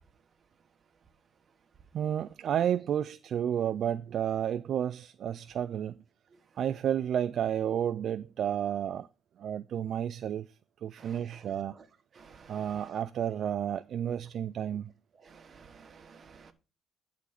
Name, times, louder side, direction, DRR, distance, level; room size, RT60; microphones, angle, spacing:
voice 1, 1.9-6.0 6.6-9.1 9.4-10.5 10.8-11.8 12.5-14.9, right 9 dB, 55° right, 0.3 m, -31 dB
voice 2, 12.2-12.5 15.3-16.5, right 5 dB, 35° right, 1.2 m, -53 dB
11.5 x 3.8 x 5.7 m
cardioid pair, 130°, 0 cm